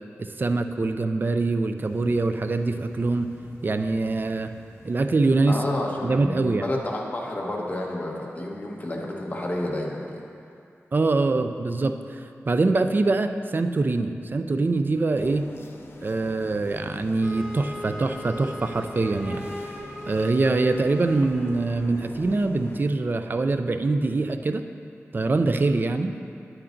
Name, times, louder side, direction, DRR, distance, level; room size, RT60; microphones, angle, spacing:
voice 1, 0.2-3.3 3.6-4.5 4.8-5.6 6.0-6.6 10.9-15.5 16.0-19.5 20.1-24.6 25.1-26.1, right 3 dB, 40° right, 8 dB, 0.4 m, -24 dB
sound 1, 1.8-6.3, right 1 dB, 85° right, 1.5 m, -50 dB
voice 2, 5.5-10.2, left 1 dB, 30° left, -2 dB, 1.2 m, -30 dB
sound 2, 15.2-22.8, left 2 dB, 50° left, 0.6 m, -43 dB
Wind instrument woodwind instrument, 17.2-21.6, equal, 5° right, 0.8 m, -39 dB
9.9 x 8.6 x 2.6 m, 2.5 s
wide cardioid pair, 95°, 5 cm